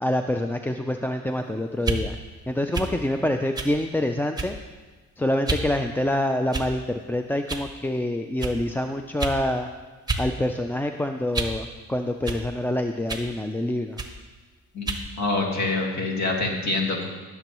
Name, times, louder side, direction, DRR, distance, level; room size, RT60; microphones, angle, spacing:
voice 1, 0.0-2.2 2.5-4.6 5.2-9.7 10.2-14.0, left 1 dB, 5° left, 6 dB, 0.4 m, -26 dB
sound 1, 1.8-2.0 2.7-2.9 3.6-3.8 4.4-4.7 5.5-5.7 6.5-6.9 7.5-7.7 8.4-8.6 9.2-9.4 10.1-10.3 10.6-11.6 12.3-12.4 13.1-13.3 14.0-14.2 14.9-15.1, right 3 dB, 15° right, 1.1 m, -29 dB
voice 2, 14.7-17.1, left 3 dB, 65° left, 0 dB, 2.1 m, -26 dB
16.0 x 6.9 x 3.0 m, 1.3 s
cardioid pair, 90°, 30 cm